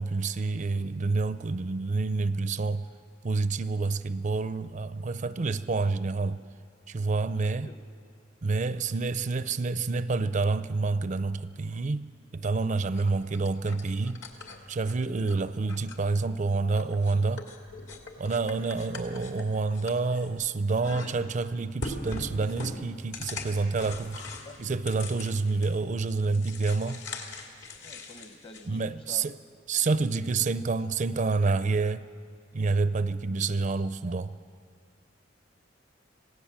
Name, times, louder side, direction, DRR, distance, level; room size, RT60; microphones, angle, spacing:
voice 1, 0.0-2.9 3.2-6.4 6.9-7.7 8.4-14.3 14.7-17.5 18.2-24.2 24.6-27.1 28.7-29.3 29.7-32.0 32.5-34.3, right 3 dB, 40° right, 0.5 m, -28 dB
voice 2, 7.4-7.8 13.1-13.2 23.8-24.0 24.4-24.6 27.8-29.3 29.7-30.7, left 2 dB, 30° left, 1.0 m, -50 dB
sound 1, 12.9-15.4 15.7-16.4 16.7-20.5 20.8-21.4 21.8-25.8 26.1-28.7, left 2 dB, 65° left, 2.5 m, -41 dB
26.0 x 17.5 x 7.4 m
head